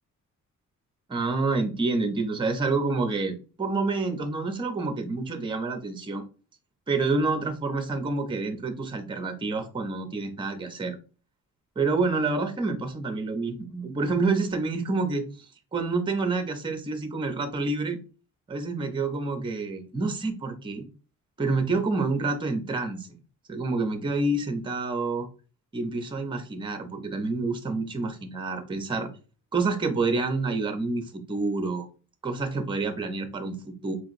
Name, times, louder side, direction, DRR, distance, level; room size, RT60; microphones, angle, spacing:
voice 1, 1.1-6.3 6.9-11.0 11.8-15.3 15.7-18.0 18.5-20.8 21.4-23.1 23.5-25.3 25.7-29.1 29.5-31.9 32.2-34.0, right 3 dB, 15° right, 6 dB, 0.5 m, -28 dB
4.4 x 2.9 x 2.5 m, 0.35 s
wide cardioid pair, 155°, 32 cm